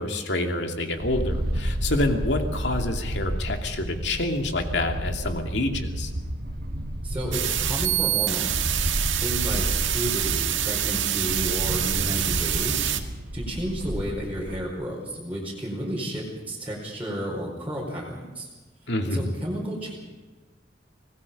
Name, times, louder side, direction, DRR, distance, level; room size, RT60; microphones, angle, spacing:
voice 1, 0.0-6.1 18.9-19.3, left 2 dB, 65° left, 4 dB, 2.7 m, -27 dB
sound 1, 1.0-14.6, equal, 55° right, 1.6 m, -31 dB
voice 2, 7.0-8.7 9.2-12.9 13.3-18.5 19.0-19.9, equal, 10° right, -6 dB, 5.0 m, -32 dB
sound 2, 7.3-13.0, right 12 dB, 90° right, 1.7 m, -26 dB
25.5 x 19.5 x 5.5 m, 1.2 s
head